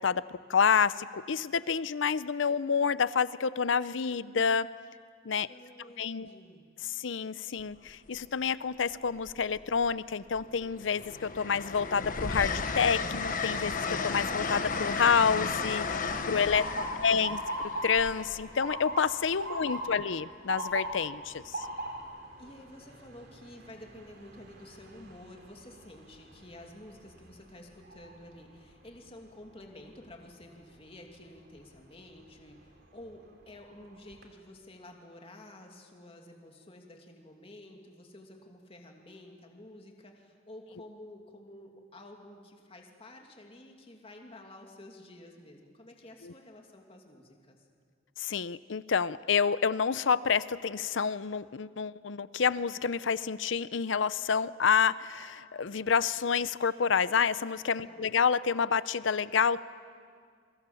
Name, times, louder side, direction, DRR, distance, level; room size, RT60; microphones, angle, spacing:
voice 1, 0.0-4.7 5.2-5.5 6.0-6.3 6.8-17.4 17.8-21.7 48.2-59.6, left 6 dB, 75° left, 16 dB, 0.6 m, -28 dB
voice 2, 5.5-6.6 16.3-17.5 19.6-20.1 22.4-47.7 57.9-58.2, left 1 dB, 30° left, 2 dB, 2.6 m, -51 dB
Train, 7.6-7.9 9.2-9.9 10.3-19.1 20.7-20.9, left 4 dB, 45° left, 1.3 m, -34 dB
Motor vehicle (road) / Siren, 16.5-28.4 28.9-29.3 30.1-30.4 32.3-32.5 33.0-33.1 33.5-34.2, right 1 dB, 55° right, 2.9 m, -40 dB
28.0 x 23.5 x 7.1 m, 2.1 s
head